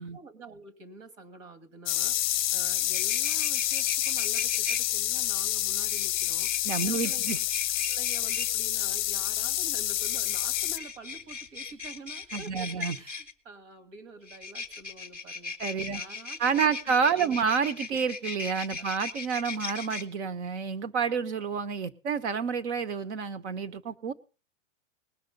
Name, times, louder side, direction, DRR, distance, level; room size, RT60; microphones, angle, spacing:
voice 1, 0.0-7.3 7.9-15.6 15.9-17.4 18.8-18.9, right 3 dB, 75° right, 9 dB, 2.5 m, -48 dB
sound 1, 1.9-10.8, left 14 dB, 40° left, 0.6 m, -28 dB
sound 2, 2.8-4.8 5.9-8.5 9.9-13.3 14.2-20.0, left 4 dB, 5° right, 0.6 m, -38 dB
voice 2, 6.6-7.4 12.3-13.0 15.6-16.0 16.4-24.1, right 6 dB, 60° right, 13 dB, 1.1 m, -29 dB
19.5 x 6.7 x 5.3 m, 0.36 s
supercardioid pair, 175°, 38 cm